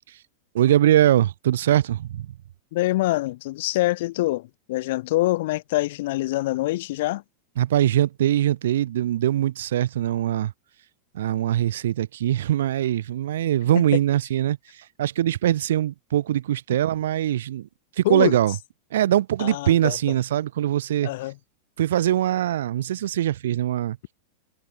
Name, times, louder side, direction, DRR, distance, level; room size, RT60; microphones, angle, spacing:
voice 1, 0.5-2.3 7.6-10.5 11.1-14.6 15.0-17.7 18.0-18.5 18.9-21.1 21.8-24.0, right 12 dB, 60° right, 0.8 m, -22 dB
voice 2, 2.7-7.2 18.0-18.4 19.4-20.0 21.0-21.3, left 18 dB, 50° left, 0.9 m, -25 dB
figure-of-eight pair, 90°, 0 cm